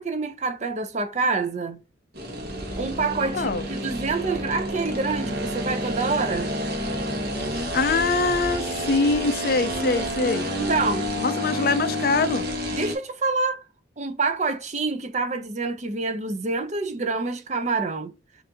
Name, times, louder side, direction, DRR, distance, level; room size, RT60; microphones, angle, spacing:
voice 1, 0.0-1.8 2.8-6.5 10.6-11.1 12.7-13.6 14.0-18.1, right 4 dB, 40° right, 0.6 m, -27 dB
sound 1, 2.1-12.9, equal, 55° right, 1.3 m, -29 dB
voice 2, 3.3-3.7 7.5-10.5 11.2-12.5, left 3 dB, 55° left, 0.4 m, -24 dB
6.8 x 2.6 x 2.8 m
head